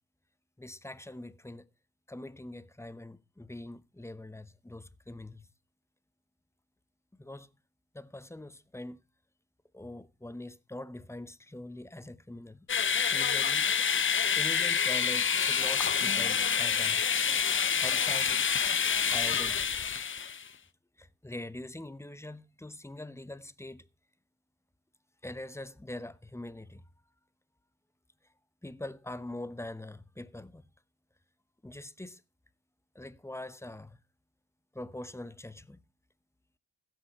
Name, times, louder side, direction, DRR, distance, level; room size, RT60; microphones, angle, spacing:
voice 1, 0.6-1.7 2.1-5.4 7.2-7.5 7.9-9.0 9.7-12.7 13.0-13.7 14.3-17.0 17.8-18.5 19.1-19.7 21.0-23.9 25.2-26.8 28.6-30.6 31.6-32.2 32.9-34.0 34.7-35.8, left 1 dB, 5° left, 0.9 m, -43 dB
sound 1, 12.7-20.5, left 7 dB, 30° left, 0.6 m, -27 dB
15.5 x 6.5 x 5.0 m
supercardioid pair, 40°, 42 cm